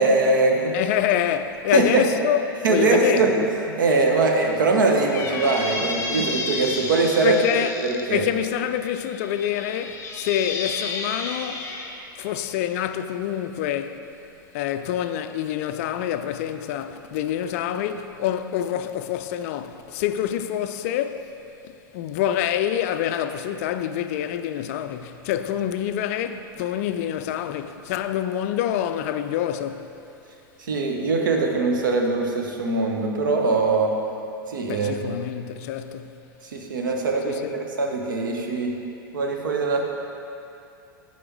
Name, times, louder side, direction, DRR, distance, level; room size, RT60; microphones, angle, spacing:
voice 1, 0.0-0.7 1.7-2.0 2.6-3.3 3.8-7.4 7.8-8.2 30.6-33.9 34.5-35.1 36.4-38.7 39.1-39.8, right 3 dB, 60° right, 0.9 m, -22 dB
voice 2, 0.7-2.4 2.7-3.5 7.2-7.7 8.1-11.7 12.2-14.0 14.5-21.3 21.6-29.9 34.7-36.2 37.2-37.5, left 10 dB, 40° left, 0.4 m, -26 dB
Squeak, 4.9-8.0 8.8-11.9, left 3 dB, 25° left, 0.8 m, -31 dB
9.7 x 4.3 x 4.6 m
figure-of-eight pair, 95°, 12 cm